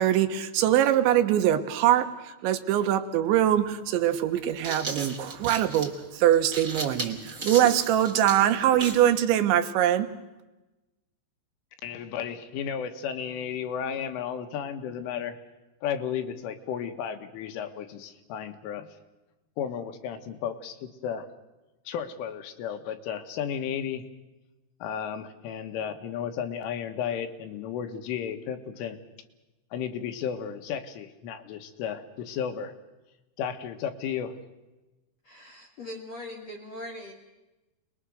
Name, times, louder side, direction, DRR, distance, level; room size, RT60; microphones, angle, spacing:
voice 1, 0.0-10.1, right 11 dB, 75° right, 8 dB, 3.3 m, -23 dB
sound 1, 3.2-3.3 4.3-9.1, right 3 dB, 25° right, 1.7 m, -35 dB
voice 2, 11.8-15.4 15.8-18.9 19.6-21.3 21.9-24.1 24.8-29.0 29.7-32.8 33.4-34.4, left 8 dB, 85° left, 7 dB, 3.9 m, -33 dB
voice 3, 35.2-37.1, left 1 dB, 55° left, 1 dB, 1.9 m, -40 dB
27.0 x 21.5 x 6.4 m, 1.1 s
omnidirectional pair, 5.6 m